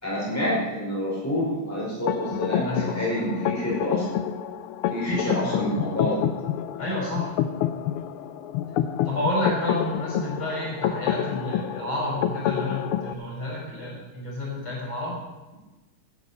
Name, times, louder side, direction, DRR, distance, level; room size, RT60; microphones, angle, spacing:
voice 1, 0.0-4.2 4.9-6.2, left 1 dB, 5° left, -5 dB, 5.1 m, -27 dB
sound 1, 2.1-13.1, left 10 dB, 85° left, 1.5 m, -28 dB
voice 2, 2.6-3.0 5.1-5.6 6.8-7.3 9.1-15.2, left 1 dB, 70° left, -5 dB, 6.7 m, -30 dB
16.5 x 11.0 x 4.4 m, 1.1 s
omnidirectional pair, 2.4 m